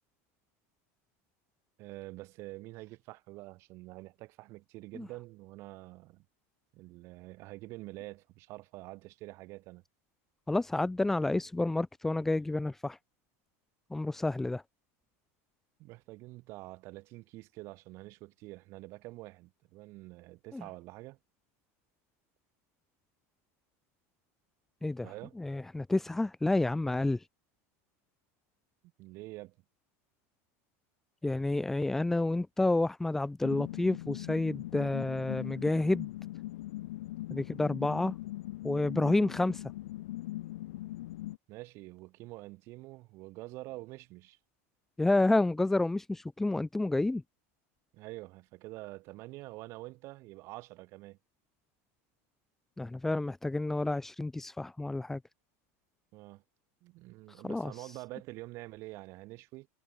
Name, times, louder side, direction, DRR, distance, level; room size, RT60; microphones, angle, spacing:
voice 1, 1.8-6.2 6.7-9.8 15.8-21.2 25.0-25.4 29.0-29.6 41.5-44.4 47.9-51.2 56.1-56.4 56.8-59.7, right 20 dB, 35° right, 5.7 m, -46 dB
voice 2, 10.5-13.0 13.9-14.6 20.5-20.6 24.8-25.1 25.4-27.2 31.2-36.1 37.3-38.2 38.6-39.6 45.0-47.2 52.8-55.2 57.4-57.9, left 2 dB, 5° left, 1.3 m, -29 dB
sound 1, 33.4-41.4, left 16 dB, 80° left, 3.1 m, -41 dB
supercardioid pair, 180°, 8 cm